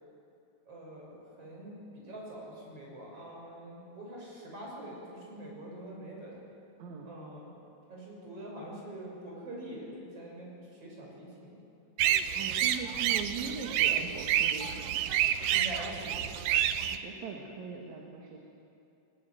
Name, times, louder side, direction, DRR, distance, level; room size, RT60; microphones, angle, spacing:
voice 1, 0.7-6.4 7.1-7.6 7.9-11.6 15.5-16.3, right 1 dB, 45° right, -3 dB, 7.5 m, -44 dB
voice 2, 6.8-7.1 12.4-15.1 16.8-18.4, right 5 dB, 65° right, 0 dB, 3.0 m, -41 dB
sound 1, 12.0-17.0, right 10 dB, 80° right, 2.4 m, -29 dB
21.0 x 20.5 x 9.4 m, 2.7 s
omnidirectional pair, 3.7 m